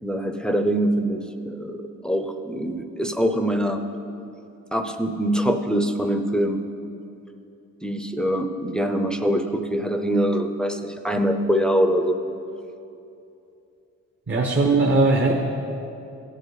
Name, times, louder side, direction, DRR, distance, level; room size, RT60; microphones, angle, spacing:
voice 1, 0.0-3.8 4.7-6.6 7.8-12.2, equal, 5° left, 6 dB, 0.6 m, -24 dB
voice 2, 14.3-15.3, right 3 dB, 40° right, 1 dB, 1.1 m, -19 dB
16.0 x 8.1 x 4.1 m, 2.7 s
cardioid pair, 90°, 30 cm